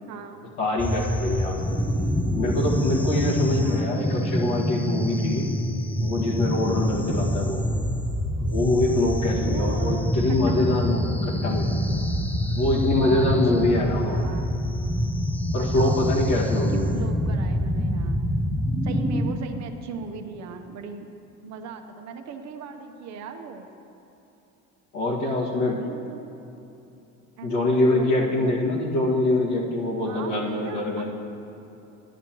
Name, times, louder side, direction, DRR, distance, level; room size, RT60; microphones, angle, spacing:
voice 1, 0.1-0.4 3.3-4.1 9.4-10.9 12.9-14.6 15.6-16.1 16.7-18.3 18.8-21.1 21.4-23.7 25.6-26.2 27.4-28.9 30.1-31.1, right 5 dB, 55° right, 5 dB, 0.8 m, -38 dB
voice 2, 0.6-1.8 2.4-5.5 6.0-7.6 8.4-11.8 12.5-14.2 15.5-16.9 24.9-25.8 27.4-31.1, left 2 dB, 65° left, -4 dB, 1.9 m, -24 dB
sound 1, 0.8-19.3, equal, 5° left, 0.5 m, -26 dB
11.0 x 9.8 x 3.0 m, 2.9 s
supercardioid pair, 90°, 32 cm